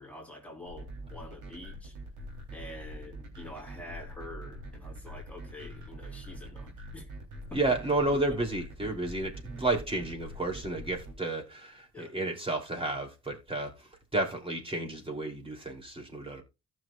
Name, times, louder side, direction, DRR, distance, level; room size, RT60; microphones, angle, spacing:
voice 1, 0.0-2.0 2.5-7.1 7.5-7.6 8.1-8.4 11.9-12.2, left 2 dB, 5° left, 3.2 m, -46 dB
sound 1, 0.7-11.1, right 1 dB, 85° right, 3.4 m, -43 dB
voice 2, 7.5-16.4, right 2 dB, 20° right, 3.1 m, -32 dB
15.0 x 6.3 x 2.4 m
cardioid pair, 90°, 30 cm